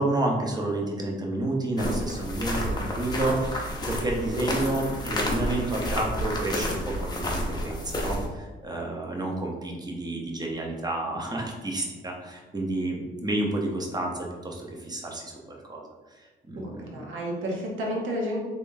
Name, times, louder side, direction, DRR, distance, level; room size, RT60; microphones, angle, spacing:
voice 1, 0.0-15.8 16.5-17.0, right 2 dB, 20° right, 0 dB, 0.8 m, -30 dB
sound 1, 1.8-8.3, left 1 dB, 20° left, 0.7 m, -30 dB
voice 2, 16.6-18.4, equal, 80° right, -2 dB, 0.9 m, -31 dB
3.5 x 3.4 x 2.6 m, 1.3 s
cardioid pair, 90°, 20 cm